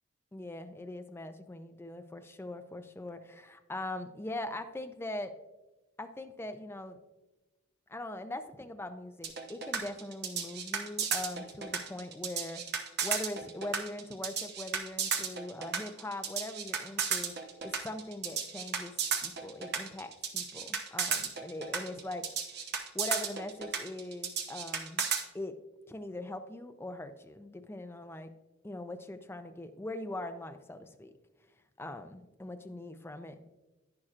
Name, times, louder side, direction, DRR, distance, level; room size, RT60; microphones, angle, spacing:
voice 1, 0.3-5.3 6.0-7.0 7.9-18.9 19.2-22.3 22.9-25.0 25.3-25.5 25.9-28.3 28.6-31.1 31.8-33.5, left 1 dB, 10° left, 7 dB, 0.4 m, -41 dB
sound 1, 9.2-25.2, right 6 dB, 45° right, 0.9 m, -33 dB
10.5 x 10.0 x 2.4 m, 1.1 s
head